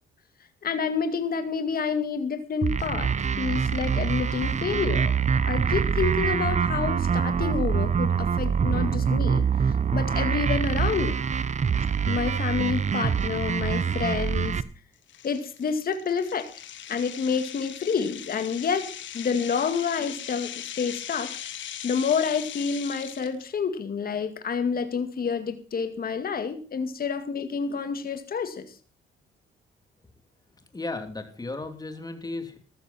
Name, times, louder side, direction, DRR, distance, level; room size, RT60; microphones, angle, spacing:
voice 1, 0.6-5.2 5.5-11.2 12.1-14.6 15.2-16.5 16.9-21.4 21.8-28.7, left 6 dB, 50° left, 8 dB, 2.1 m, -28 dB
sound 1, 2.6-14.6, right 6 dB, 35° right, 0.9 m, -25 dB
sound 2, 13.2-13.3 13.8-14.0 14.5-14.6 15.1-23.4, left 10 dB, 70° left, 1.4 m, -39 dB
voice 2, 30.7-32.6, left 2 dB, 20° left, 7 dB, 3.0 m, -35 dB
14.5 x 14.0 x 4.3 m, 0.38 s
cardioid pair, 90°, 20 cm